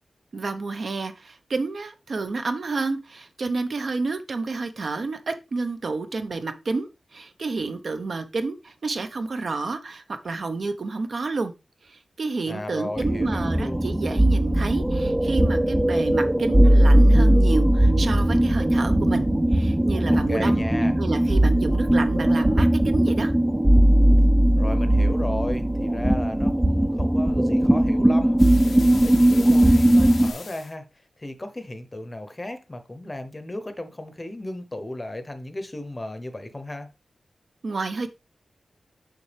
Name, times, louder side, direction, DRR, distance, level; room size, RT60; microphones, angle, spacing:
voice 1, 0.3-11.5 11.8-19.3 19.5-20.6 21.0-23.3 37.6-38.1, right 3 dB, 55° right, 0.9 m, -29 dB
voice 2, 12.4-13.9 20.0-20.9 24.6-30.9 31.2-36.9, left 1 dB, 20° left, 0.8 m, -35 dB
sound 1, 13.0-30.3, right 1 dB, 10° right, 0.4 m, -19 dB
sound 2, 28.4-30.7, left 5 dB, 80° left, 0.7 m, -40 dB
6.9 x 5.8 x 3.4 m
wide cardioid pair, 160°, 0 cm